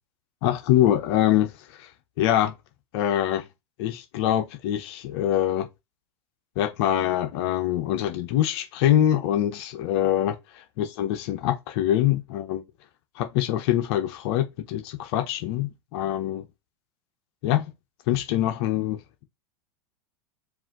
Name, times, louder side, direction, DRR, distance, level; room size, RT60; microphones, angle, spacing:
voice 1, 0.4-1.5 1.8-1.9 2.2-2.5 2.9-3.4 3.8-5.7 6.6-12.6 13.2-16.4 17.4-17.7 18.1-19.0, left 12 dB, 60° left, 1.0 m, -24 dB
4.8 x 2.8 x 3.8 m
hypercardioid pair, 105°, 15 cm